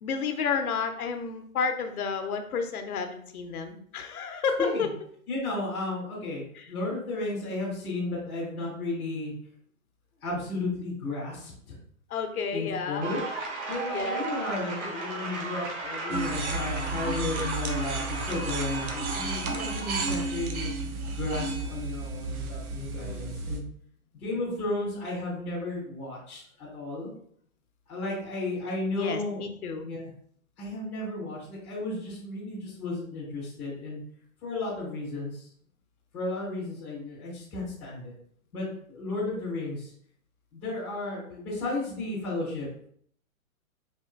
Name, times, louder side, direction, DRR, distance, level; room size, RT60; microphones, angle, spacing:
voice 1, 0.0-4.9 6.5-6.7 12.1-13.1 13.9-14.2 23.0-23.3 28.9-29.8, left 5 dB, 85° left, 6 dB, 0.8 m, -31 dB
voice 2, 5.3-9.3 10.2-11.8 12.5-13.2 13.7-20.7 21.1-23.6 24.1-27.1 27.9-29.4 29.8-30.0 30.6-34.0 34.4-35.4 36.1-38.1 38.5-39.9 40.5-42.7, left 2 dB, 5° left, -9 dB, 0.4 m, -33 dB
sound 1, 13.0-20.2, right 3 dB, 55° right, 1.3 m, -35 dB
sound 2, 16.1-23.6, right 3 dB, 90° right, 0.8 m, -33 dB
4.2 x 2.6 x 2.4 m, 0.62 s
hypercardioid pair, 155°, 42 cm